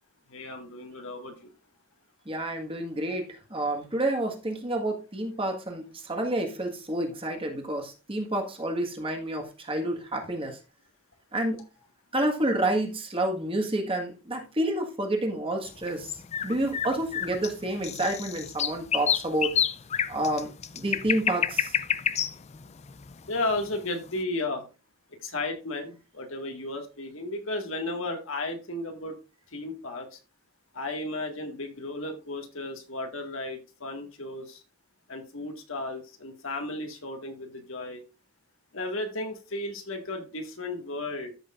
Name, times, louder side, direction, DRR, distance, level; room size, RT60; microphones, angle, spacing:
voice 1, 0.3-1.5 23.3-24.6 25.2-29.2 29.5-30.2 30.7-34.6 35.1-38.0 38.7-41.3, left 2 dB, 70° left, 3 dB, 1.9 m, -34 dB
voice 2, 2.2-10.6 11.3-11.6 12.1-16.2 16.4-19.6 20.1-21.8, right 1 dB, 25° right, 2 dB, 1.6 m, -29 dB
sound 1, 15.6-23.9, left 8 dB, 30° left, 0.4 m, -29 dB
13.5 x 6.5 x 2.5 m, 0.32 s
head